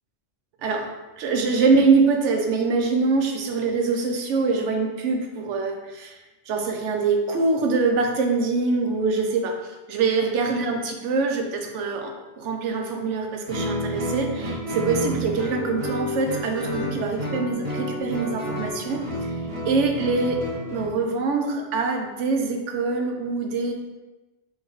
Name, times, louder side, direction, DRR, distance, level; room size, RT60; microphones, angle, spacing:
voice 1, 0.6-6.2 6.5-19.3 19.7-20.4 20.7-23.7, right 4 dB, 75° right, 3 dB, 0.9 m, -24 dB
Guitar, 13.5-21.0, equal, 30° right, 0.7 m, -30 dB
4.5 x 3.1 x 3.0 m, 1.1 s
omnidirectional pair, 1.3 m